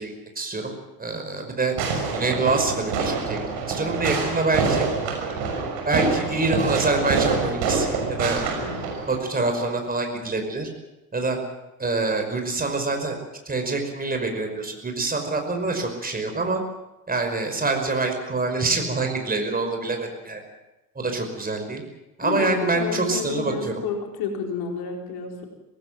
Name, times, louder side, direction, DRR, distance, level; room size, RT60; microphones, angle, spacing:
voice 1, 0.0-1.8 2.1-3.4 3.7-4.9 5.9-8.5 9.1-10.7 11.1-11.4 11.8-13.2 13.5-16.6 17.1-20.4 21.0-21.8 22.2-23.7, right 3 dB, 20° right, 4 dB, 5.5 m, -25 dB
Fireworks, 1.8-9.2, right 4 dB, 55° right, 6.2 m, -26 dB
voice 2, 8.5-8.9 22.2-25.5, left 5 dB, 55° left, 2 dB, 4.5 m, -30 dB
25.5 x 18.5 x 7.6 m, 0.99 s
figure-of-eight pair, 60°, 44 cm